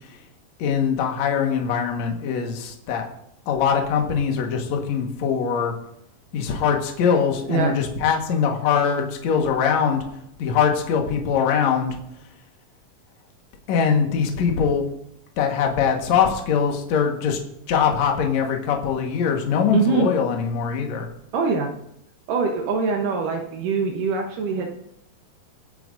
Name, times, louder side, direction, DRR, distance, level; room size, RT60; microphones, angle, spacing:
voice 1, 0.6-3.1 3.5-5.7 6.3-10.0 10.4-12.0 13.7-14.8 15.4-17.4 17.7-21.1, left 7 dB, 60° left, 2 dB, 2.4 m, -22 dB
voice 2, 19.7-20.1 21.3-21.7 22.3-24.7, right 5 dB, 70° right, 3 dB, 2.4 m, -23 dB
23.5 x 9.0 x 2.6 m, 0.77 s
omnidirectional pair, 4.2 m